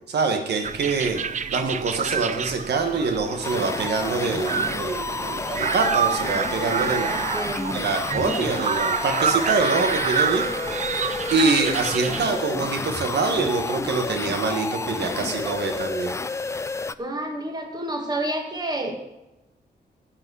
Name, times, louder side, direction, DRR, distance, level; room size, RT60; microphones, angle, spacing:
voice 1, 0.1-1.2 1.5-7.2 7.7-10.4 11.3-16.1, right 4 dB, 80° right, 5 dB, 1.4 m, -25 dB
sound 1, 0.6-12.3, right 6 dB, 45° right, 0.5 m, -28 dB
sound 2, 3.4-16.9, left 3 dB, 15° left, 0.3 m, -30 dB
voice 2, 7.0-7.8 15.0-15.1 17.0-19.0, right 1 dB, 25° right, 3 dB, 2.1 m, -30 dB
11.0 x 8.8 x 6.3 m, 0.92 s
wide cardioid pair, 135°, 17 cm